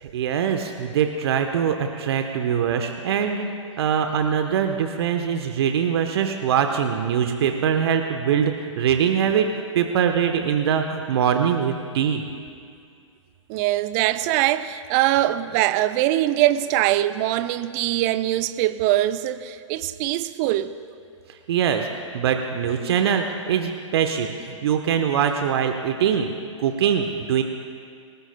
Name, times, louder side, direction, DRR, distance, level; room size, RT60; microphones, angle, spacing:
voice 1, 0.0-3.5 3.8-9.5 9.7-12.2 21.5-21.9 22.1-26.3 26.6-27.4, right 8 dB, 50° right, 1.0 m, -23 dB
voice 2, 13.5-20.8, right 14 dB, 30° right, 0.5 m, -22 dB
26.5 x 18.5 x 2.2 m
figure-of-eight pair, 120°, 17 cm